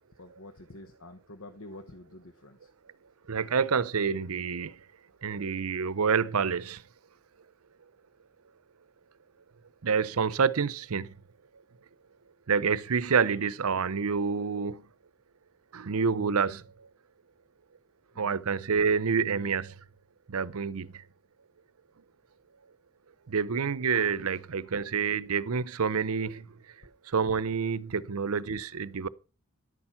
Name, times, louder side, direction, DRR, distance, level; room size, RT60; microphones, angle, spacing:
voice 1, 0.0-2.7 18.1-18.4 28.0-28.3, left 2 dB, 70° left, 1.1 m, -48 dB
voice 2, 3.3-4.8 5.2-6.8 9.8-11.1 12.5-14.8 15.7-16.9 18.2-19.8 20.3-21.0 23.3-26.5 27.1-29.1, right 5 dB, 85° right, 0.7 m, -28 dB
11.5 x 8.8 x 5.8 m
head